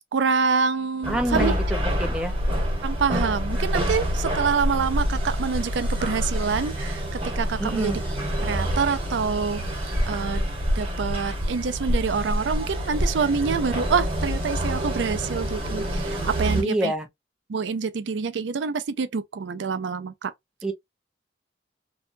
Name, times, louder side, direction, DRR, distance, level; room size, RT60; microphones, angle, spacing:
voice 1, 0.1-1.5 2.8-8.0 8.4-9.6 10.1-10.4 10.8-16.9 17.5-20.3, right 5 dB, 85° right, 0.4 m, -26 dB
sound 1, 1.0-16.6, equal, 30° right, 1.2 m, -27 dB
voice 2, 1.1-2.3 7.6-8.0 16.5-17.1 20.6-20.7, right 1 dB, 5° right, 0.5 m, -27 dB
2.7 x 2.2 x 2.6 m
head